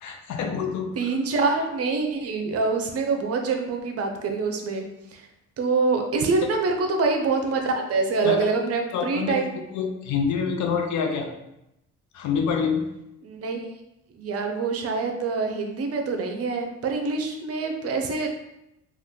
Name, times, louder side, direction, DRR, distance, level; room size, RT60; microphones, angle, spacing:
voice 1, 0.0-0.9 8.2-8.5 8.9-9.4 9.7-11.3 12.1-12.9, left 6 dB, 70° left, 4 dB, 0.5 m, -26 dB
voice 2, 1.0-4.9 5.1-5.3 5.6-9.5 13.2-13.6 14.1-18.3, right 4 dB, 50° right, 3 dB, 0.6 m, -25 dB
2.5 x 2.3 x 3.6 m, 0.89 s
cardioid pair, 90°, 30 cm